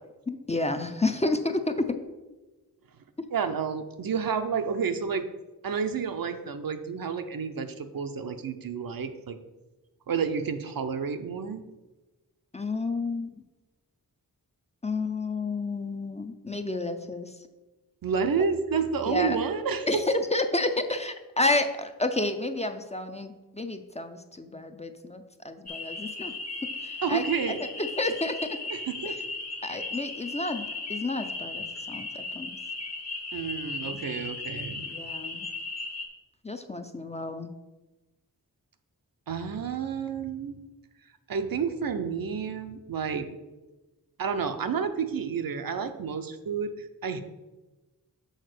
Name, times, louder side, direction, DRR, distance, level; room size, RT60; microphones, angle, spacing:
voice 1, 0.3-2.0 12.5-13.3 14.8-17.3 19.1-19.4 19.9-26.3 26.6-27.2 27.8-28.6 29.1-29.2 29.6-32.6 33.9-34.0 34.9-35.5 36.4-37.5, left 2 dB, 20° left, 7 dB, 0.4 m, -30 dB
voice 2, 3.3-5.3 5.6-9.4 10.1-11.6 18.0-20.0 27.0-27.6 28.7-29.2 33.3-34.9 39.3-40.6 41.3-43.3 44.2-47.2, right 6 dB, 70° right, 8 dB, 0.7 m, -30 dB
sound 1, 25.7-36.1, left 3 dB, 45° left, 1.0 m, -36 dB
6.5 x 4.2 x 6.5 m, 1.1 s
wide cardioid pair, 125°, 36 cm